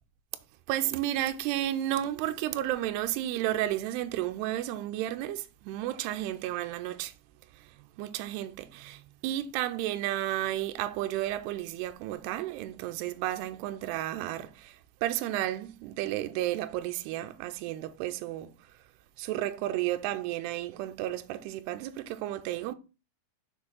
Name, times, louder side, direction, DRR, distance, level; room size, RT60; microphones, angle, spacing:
voice 1, 0.7-7.1 7.6-18.5 19.2-22.7, right 14 dB, 85° right, 2.4 m, -32 dB
6.5 x 4.4 x 5.6 m
omnidirectional pair, 5.3 m